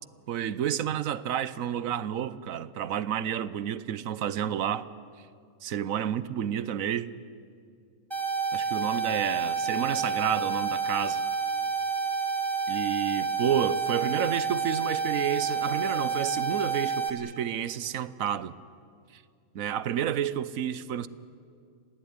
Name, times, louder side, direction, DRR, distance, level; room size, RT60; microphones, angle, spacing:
voice 1, 0.3-4.9 5.6-7.1 8.5-11.2 12.7-18.5 19.5-21.1, right 9 dB, 80° right, 1.2 m, -30 dB
sound 1, 8.1-17.1, right 5 dB, 20° right, 2.4 m, -29 dB
26.5 x 17.5 x 9.5 m
omnidirectional pair, 1.4 m